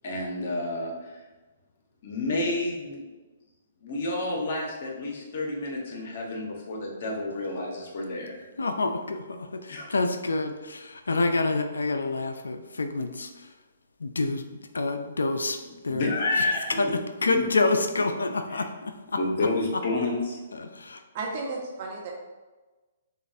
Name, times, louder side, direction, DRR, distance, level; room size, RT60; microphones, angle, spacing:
voice 1, 0.0-1.2 2.0-3.0 3.8-8.4 9.7-9.9 15.9-16.8 17.3-17.5 18.5-18.7 19.2-20.4, left 2 dB, 55° left, 1.1 m, -30 dB
voice 2, 8.6-13.3 14.0-14.4 14.7-15.6 15.8-16.1 16.8-18.9 20.6-21.0, left 3 dB, 90° left, 0.3 m, -27 dB
voice 3, 21.1-22.1, right 3 dB, 45° right, 1.1 m, -33 dB
6.6 x 2.5 x 2.5 m
hypercardioid pair, 140°, 0 cm